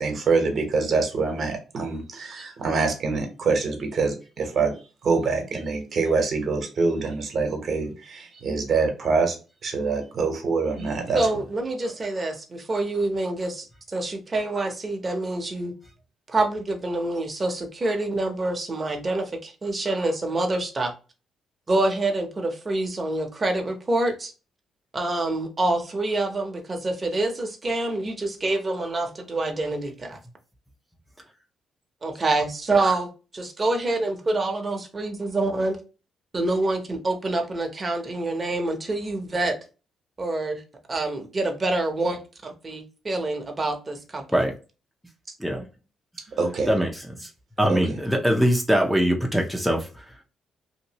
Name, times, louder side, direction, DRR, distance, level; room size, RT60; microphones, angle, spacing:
voice 1, 0.0-4.7 5.0-9.4 9.6-11.3 46.4-46.7 47.7-47.8, right 4 dB, 55° right, 1.0 m, -25 dB
voice 2, 11.1-15.7 16.3-20.9 21.7-24.3 24.9-30.2 32.0-35.8 36.3-39.5 40.2-40.6 40.9-42.2 42.4-44.2, right 2 dB, 30° right, 0.8 m, -26 dB
voice 3, 46.7-47.3 47.6-50.2, equal, ahead, 0.5 m, -23 dB
2.8 x 2.5 x 2.8 m
cardioid pair, 90°, 0 cm